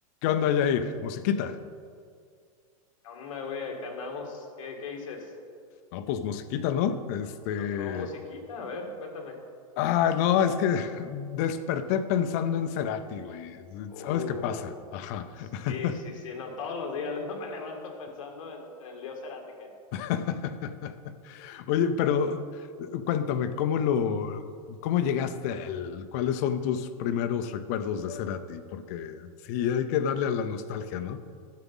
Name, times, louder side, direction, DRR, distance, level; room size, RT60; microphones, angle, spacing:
voice 1, 0.2-1.6 5.9-8.1 9.8-16.0 19.9-31.2, left 8 dB, 25° left, 11 dB, 0.4 m, -29 dB
voice 2, 3.0-5.3 7.6-9.4 13.9-14.8 15.4-19.7, left 4 dB, 60° left, 2 dB, 1.8 m, -38 dB
11.5 x 7.1 x 5.4 m, 2.2 s
supercardioid pair, 175°, 19 cm